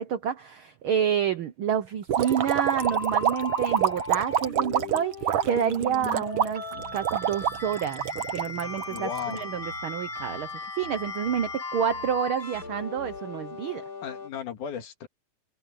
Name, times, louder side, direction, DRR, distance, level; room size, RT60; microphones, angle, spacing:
voice 1, 0.0-10.5 10.8-13.8, right 8 dB, 90° right, 1.1 m, -29 dB
sound 1, 2.1-9.4, right 9 dB, 60° right, 1.8 m, -27 dB
sound 2, 2.2-14.3, left 3 dB, 25° left, 3.3 m, -38 dB
sound 3, 6.4-6.5 6.7-11.6 11.9-12.2 12.5-13.2, right 2 dB, 35° right, 7.5 m, -49 dB
voice 2, 8.9-9.5 14.0-15.1, left 8 dB, 75° left, 3.4 m, -35 dB
omnidirectional pair, 3.6 m